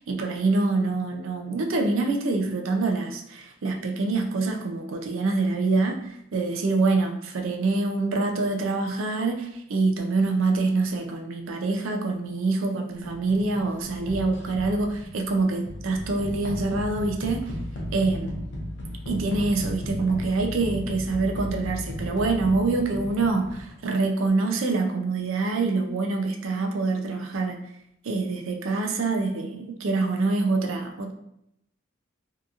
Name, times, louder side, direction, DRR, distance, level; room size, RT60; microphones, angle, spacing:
voice 1, 0.1-17.5 17.9-18.4 19.1-27.6 28.0-31.1, right 3 dB, 80° right, 4 dB, 0.4 m, -25 dB
sound 1, 13.0-23.9, left 1 dB, 55° left, 0.6 m, -35 dB
2.8 x 2.4 x 2.6 m, 0.77 s
head